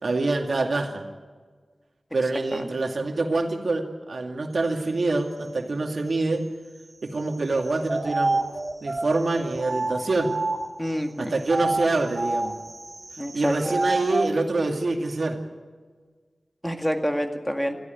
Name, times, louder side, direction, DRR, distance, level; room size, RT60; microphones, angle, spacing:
voice 1, 0.0-1.0 2.1-6.5 7.0-8.4 8.8-10.3 11.2-12.5 13.3-15.4, right 2 dB, 75° right, 3 dB, 2.3 m, -26 dB
sound 1, 7.5-10.9 11.4-14.4, right 2 dB, 45° right, 2.1 m, -28 dB
voice 2, 10.8-11.3 13.2-13.6 16.6-17.8, equal, 5° left, 5 dB, 2.1 m, -27 dB
22.5 x 14.5 x 9.4 m, 1.5 s
wide cardioid pair, 65°, 0 cm